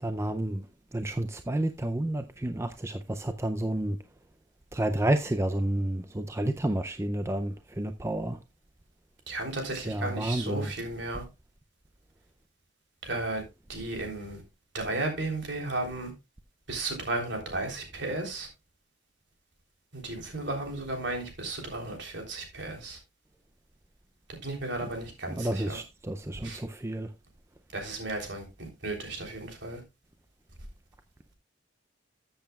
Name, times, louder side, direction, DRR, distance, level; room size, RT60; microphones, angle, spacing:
voice 1, 0.0-0.6 0.9-4.0 4.7-8.4 9.8-10.7 25.3-27.1, right 1 dB, 15° right, 0.5 m, -30 dB
voice 2, 9.3-11.2 13.0-13.4 13.7-14.4 14.7-16.1 16.7-18.5 19.9-23.0 24.4-25.8 26.4-26.6 27.7-29.8, right 2 dB, 65° right, 3.5 m, -34 dB
14.0 x 7.8 x 2.4 m
head